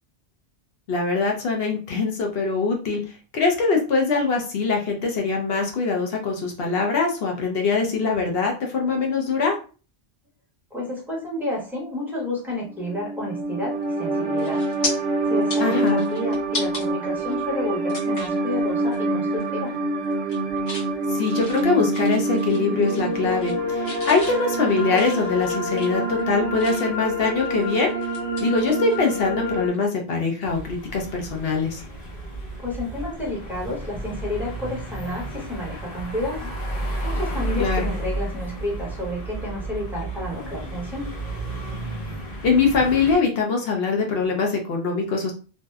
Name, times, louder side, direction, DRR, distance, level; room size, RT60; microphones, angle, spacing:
voice 1, 0.9-3.0 3.3-9.6 15.6-16.0 21.1-27.9 28.4-31.8 37.5-37.9 42.4-45.3, left 4 dB, 65° left, 2 dB, 0.8 m, -23 dB
voice 2, 10.7-14.6 15.3-19.7 32.6-36.4 37.0-41.1, left 1 dB, ahead, -4 dB, 0.8 m, -30 dB
sound 1, 12.7-29.7, right 2 dB, 65° right, 0.7 m, -26 dB
sound 2, 13.8-14.0 14.4-14.9 15.3-16.8 17.3-17.4 17.9-18.4 18.8-19.0 19.3-19.8 20.1-20.9 21.3-22.6 22.9-23.6 23.8-27.0 27.4-29.3 29.6-29.8 31.6-31.8, left 2 dB, 80° left, 1.2 m, -35 dB
sound 3, 30.4-43.2, right 1 dB, 45° left, 1.0 m, -32 dB
2.6 x 2.1 x 2.3 m, 0.36 s
omnidirectional pair, 1.2 m